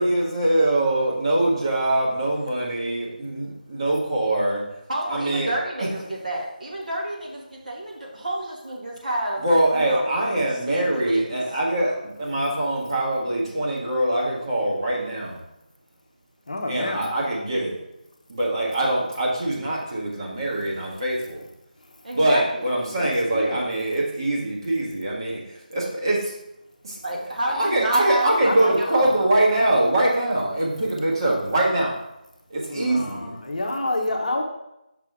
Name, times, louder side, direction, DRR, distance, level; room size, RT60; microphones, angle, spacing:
voice 1, 0.0-4.6 5.1-5.5 5.8-5.9 9.4-15.4 16.7-17.8 18.3-21.4 22.1-26.3 26.8-27.0 27.5-31.9 32.5-33.4, right 1 dB, 30° right, -4 dB, 1.6 m, -23 dB
voice 2, 4.9-9.5 9.7-10.2 10.5-11.3 22.0-22.7 27.0-29.2, right 1 dB, 55° right, -2 dB, 1.9 m, -30 dB
voice 3, 16.5-17.0 23.0-23.6 28.4-28.9 32.7-33.2 33.5-34.4, left 2 dB, 50° left, 2 dB, 0.9 m, -28 dB
6.0 x 5.7 x 3.5 m, 0.87 s
figure-of-eight pair, 160°, 5 cm